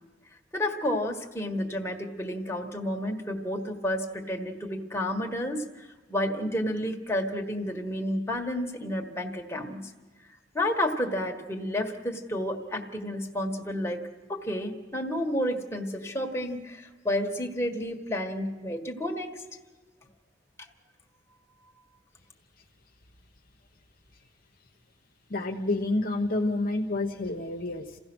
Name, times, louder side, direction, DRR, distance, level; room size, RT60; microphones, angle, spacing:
voice 1, 0.5-9.8 10.5-14.0 14.3-19.4, left 1 dB, 15° left, 1 dB, 1.6 m, -31 dB
voice 2, 25.3-28.0, left 2 dB, 50° left, 3 dB, 1.2 m, -29 dB
28.5 x 16.0 x 6.3 m, 1.3 s
head